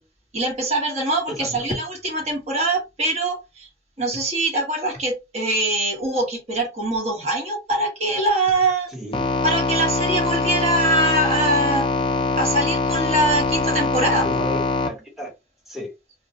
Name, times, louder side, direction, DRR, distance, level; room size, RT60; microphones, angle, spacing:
voice 1, 0.3-3.7 4.0-8.9 9.4-11.9 12.4-14.3, right 2 dB, 35° right, 1.0 m, -23 dB
voice 2, 8.9-9.2 14.1-15.3 15.7-15.9, equal, ahead, 0.8 m, -33 dB
sound 1, 9.1-14.9, left 3 dB, 30° left, 0.4 m, -23 dB
2.2 x 2.1 x 2.7 m
head